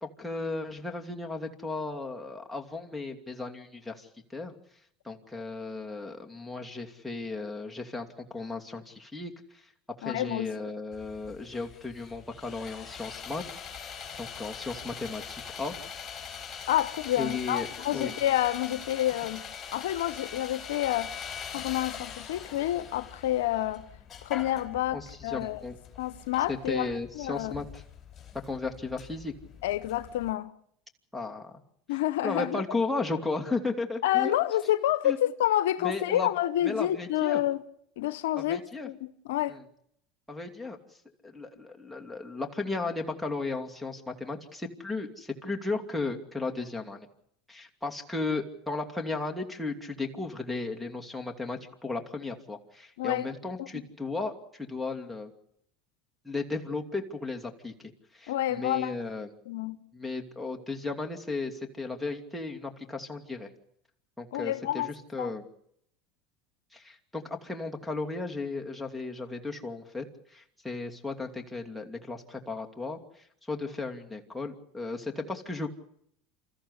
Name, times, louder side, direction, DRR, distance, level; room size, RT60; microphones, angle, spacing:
voice 1, 0.0-4.1 4.3-4.5 5.0-9.6 10.0-13.4 13.8-15.7 17.2-17.7 17.9-18.1 24.9-25.8 26.5-27.8 28.5-29.3 31.1-31.5 32.2-34.4 35.0-35.2 35.8-36.3 36.6-37.4 38.4-38.9 39.5-39.6 40.3-40.8 41.2-47.1 47.5-55.3 56.2-59.3 59.9-63.5 64.2-65.4 66.7-73.0 73.5-75.7, left 3 dB, ahead, 2.7 m, -35 dB
voice 2, 10.0-10.5 16.7-19.5 19.7-21.1 21.5-23.9 24.2-25.6 26.0-26.9 27.1-27.6 29.6-30.5 31.9-32.6 34.0-37.6 38.0-39.6 53.0-53.3 53.6-53.8 58.3-58.9 59.5-59.8 64.3-64.9 65.2-65.3, left 13 dB, 85° left, 0.8 m, -28 dB
Sawing, 10.9-30.3, left 7 dB, 30° left, 4.4 m, -43 dB
27.5 x 14.5 x 8.2 m
supercardioid pair, 95°, 0 cm